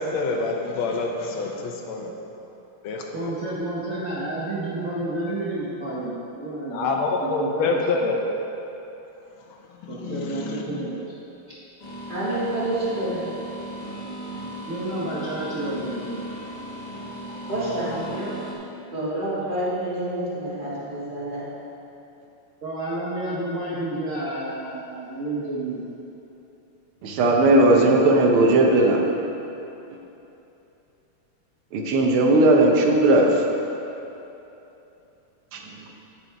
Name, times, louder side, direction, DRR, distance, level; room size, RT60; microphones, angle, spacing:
voice 1, 0.0-2.1 2.8-3.3 6.7-8.2 9.8-10.6 17.3-17.5 17.9-18.2, left 3 dB, 75° left, 1 dB, 1.5 m, -27 dB
voice 2, 3.1-6.9 7.2-8.2 9.9-11.0 14.7-16.3 22.6-25.8, right 2 dB, 50° right, -8 dB, 1.1 m, -30 dB
sound 1, 11.8-18.5, right 1 dB, 60° left, 2.0 m, -36 dB
voice 3, 12.1-13.3 17.5-18.4 18.9-21.4, right 1 dB, 25° right, -10 dB, 2.2 m, -28 dB
voice 4, 27.0-29.0 31.7-33.4 35.5-35.6, right 2 dB, 80° right, 1 dB, 1.7 m, -17 dB
10.0 x 5.3 x 4.5 m, 3.0 s
omnidirectional pair, 2.4 m